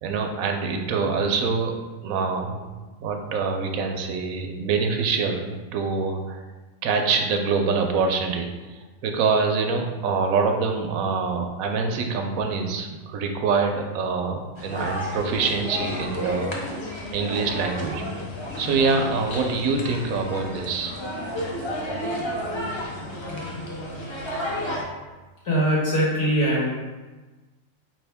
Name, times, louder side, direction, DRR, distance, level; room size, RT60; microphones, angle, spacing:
voice 1, 0.0-1.7 2.0-2.6 3.0-6.4 6.8-16.6 17.1-18.0 18.6-20.9, right 4 dB, 85° right, 4 dB, 1.1 m, -25 dB
sound 1, 14.6-24.8, left 1 dB, 35° left, 0.5 m, -32 dB
voice 2, 25.4-26.7, right 1 dB, 60° left, -5 dB, 1.6 m, -21 dB
4.5 x 3.5 x 3.4 m, 1.2 s
omnidirectional pair, 1.4 m